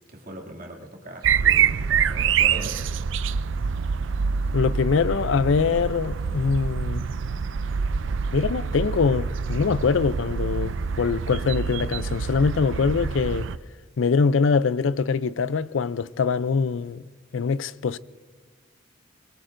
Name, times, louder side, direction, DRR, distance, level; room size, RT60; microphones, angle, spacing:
voice 1, 0.1-2.9, right 1 dB, 45° right, 2.5 m, -40 dB
sound 1, 1.2-13.6, right 6 dB, 75° right, 0.5 m, -26 dB
voice 2, 4.5-7.0 8.3-13.5 14.0-17.0 17.3-18.0, left 5 dB, 80° left, 0.4 m, -23 dB
24.0 x 22.0 x 2.6 m
head